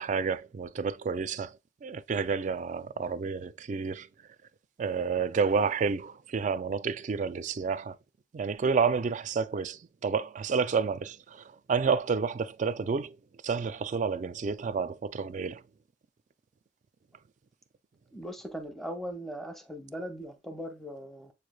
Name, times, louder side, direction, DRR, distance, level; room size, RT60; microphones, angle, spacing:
voice 1, 0.0-4.1 4.8-8.0 8.3-13.2 13.4-15.6, right 5 dB, 45° right, 0.3 m, -30 dB
voice 2, 18.1-21.3, equal, ahead, 0.7 m, -39 dB
7.0 x 3.1 x 2.2 m
head